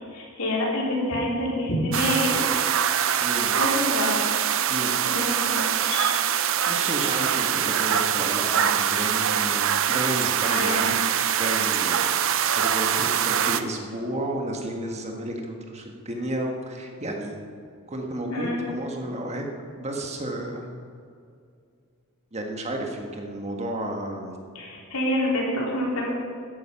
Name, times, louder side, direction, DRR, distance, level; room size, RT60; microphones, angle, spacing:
voice 1, 0.1-2.4 3.5-4.2 5.0-6.1 10.4-10.8 18.3-18.6 24.5-26.1, left 1 dB, 75° left, -3 dB, 3.7 m, -27 dB
sound 1, 1.9-13.6, right 9 dB, 65° right, 0.7 m, -24 dB
voice 2, 3.2-3.6 4.7-4.9 6.7-10.9 11.4-17.3 17.9-19.4 19.8-20.7 22.3-24.4, right 1 dB, 30° right, 2 dB, 1.6 m, -32 dB
13.0 x 11.0 x 5.8 m, 2.4 s
head